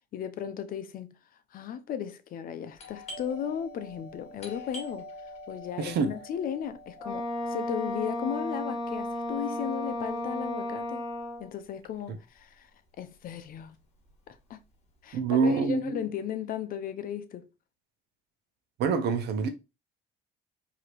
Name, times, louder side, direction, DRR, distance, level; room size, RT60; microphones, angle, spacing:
voice 1, 0.1-1.2 1.5-5.1 5.5-11.0 11.4-12.7 13.0-13.8 14.3-14.6 15.0-17.5, left 9 dB, 55° left, 0.7 m, -36 dB
Doorbell, 2.7-12.1 12.4-12.5 13.1-13.5 13.8-15.2, left 1 dB, 40° left, 1.5 m, -47 dB
voice 2, 5.8-6.1 12.1-12.2 15.1-16.0 18.8-19.5, right 5 dB, 75° right, 0.9 m, -26 dB
Wind instrument woodwind instrument, 7.0-11.5, left 1 dB, ahead, 2.1 m, -33 dB
4.9 x 2.9 x 3.0 m
cardioid pair, 110°, 17 cm